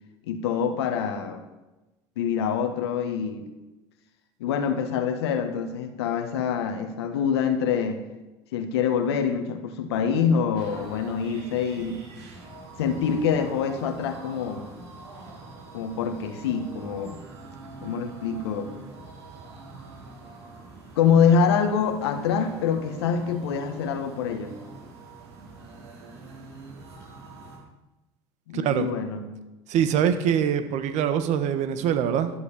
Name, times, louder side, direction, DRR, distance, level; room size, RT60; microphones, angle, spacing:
voice 1, 0.3-1.4 2.2-3.4 4.4-8.1 8.5-12.0 12.8-14.7 15.7-17.2 17.8-18.7 21.0-24.5 28.5-29.3, left 7 dB, 90° left, 6 dB, 1.4 m, -25 dB
sound 1, 10.6-27.6, right 3 dB, 90° right, 3.7 m, -44 dB
voice 2, 28.5-28.9 29.7-32.3, right 8 dB, 60° right, 10 dB, 1.4 m, -23 dB
11.5 x 7.8 x 8.6 m, 1.0 s
supercardioid pair, 85°, 13 cm